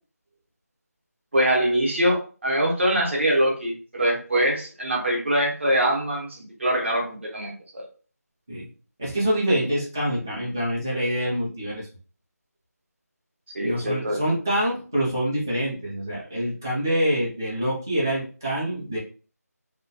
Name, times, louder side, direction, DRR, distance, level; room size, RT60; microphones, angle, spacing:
voice 1, 1.3-7.8 13.5-14.2, right 1 dB, 45° right, -1 dB, 0.8 m, -23 dB
voice 2, 9.0-11.9 13.6-19.0, equal, 10° right, -7 dB, 0.4 m, -26 dB
2.2 x 2.2 x 2.6 m, 0.38 s
figure-of-eight pair, 170°, 9 cm